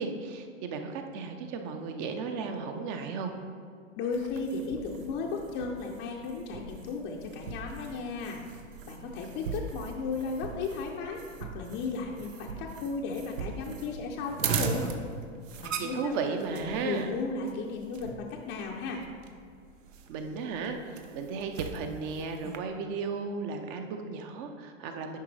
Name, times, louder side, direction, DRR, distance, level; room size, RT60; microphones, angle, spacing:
voice 1, 0.0-3.3 15.8-17.1 20.1-25.2, right 4 dB, 35° right, 5 dB, 0.7 m, -35 dB
voice 2, 4.0-8.4 8.9-14.9 15.6-16.1 16.5-19.0, left 4 dB, 25° left, 0 dB, 0.6 m, -35 dB
sound 1, 4.1-22.6, right 5 dB, 75° right, 0.9 m, -39 dB
10.0 x 5.1 x 3.3 m, 2.3 s
hypercardioid pair, 125°, 39 cm